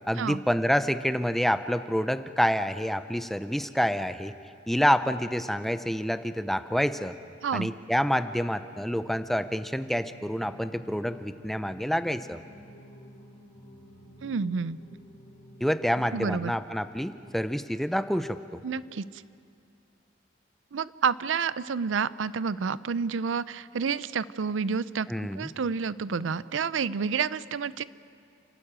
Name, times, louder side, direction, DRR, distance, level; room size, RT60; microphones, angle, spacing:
voice 1, 0.1-4.3 4.7-7.2 7.5-12.4 15.6-18.6 25.1-25.5, equal, ahead, 11 dB, 0.5 m, -27 dB
voice 2, 7.4-7.7 14.2-14.8 16.1-16.5 18.6-19.2 20.7-27.8, right 6 dB, 85° right, 17 dB, 0.5 m, -29 dB
Singing, 8.8-17.7, equal, 65° left, 4.4 m, -51 dB
29.0 x 13.0 x 8.8 m, 2.5 s
head